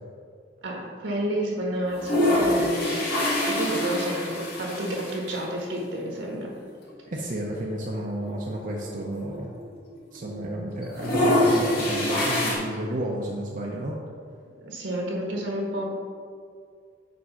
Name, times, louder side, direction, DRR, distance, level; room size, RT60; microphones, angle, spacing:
voice 1, 0.6-3.0 3.5-6.5 14.6-15.8, right 1 dB, 80° right, -1 dB, 1.6 m, -30 dB
sound 1, 1.8-5.4 5.7-5.8 6.0-6.1 7.1-7.3 7.7-7.8 8.0-9.9 10.2-10.5 10.8-12.5, left 1 dB, 55° left, 1.6 m, -25 dB
voice 2, 7.1-9.5 10.1-14.0, right 1 dB, 45° right, -2 dB, 0.7 m, -32 dB
5.2 x 4.9 x 5.6 m, 2.2 s
head